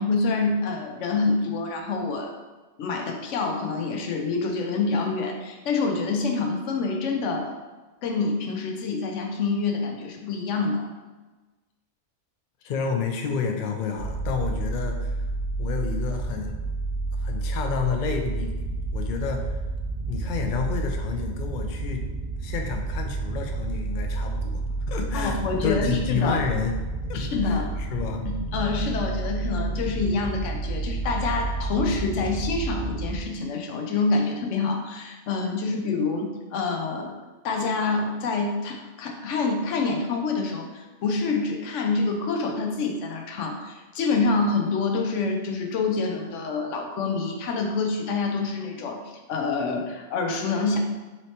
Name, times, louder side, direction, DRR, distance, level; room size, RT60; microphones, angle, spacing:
voice 1, 0.0-2.3 2.8-7.5 8.0-10.9 25.1-26.4 27.1-27.6 28.3-37.2 37.4-49.0 49.3-50.8, left 3 dB, 90° left, 2 dB, 1.0 m, -27 dB
voice 2, 12.6-15.2 15.6-16.6 17.2-18.5 18.9-19.5 20.1-22.1 22.4-26.7 27.1-28.3, left 6 dB, 60° left, 3 dB, 0.5 m, -30 dB
sound 1, 14.0-33.2, right 3 dB, 50° right, 0.7 m, -30 dB
4.1 x 3.2 x 2.8 m, 1.2 s
omnidirectional pair, 1.2 m